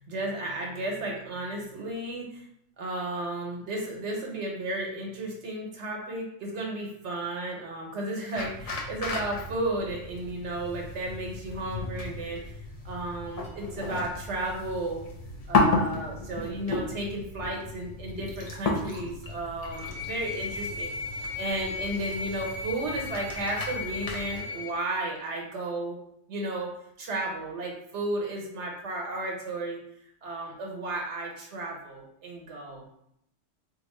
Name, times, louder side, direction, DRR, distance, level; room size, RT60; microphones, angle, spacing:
voice 1, 0.1-2.4 2.8-12.4 12.8-15.0 15.5-21.0 21.4-26.0 26.3-26.7 27.0-29.8 30.2-32.8, right 2 dB, 75° right, 0 dB, 1.0 m, -33 dB
sound 1, 8.4-24.4, left 3 dB, 50° left, 0.5 m, -33 dB
sound 2, 19.7-24.8, left 4 dB, 85° left, 1.0 m, -36 dB
2.6 x 2.4 x 4.1 m, 0.75 s
omnidirectional pair, 1.2 m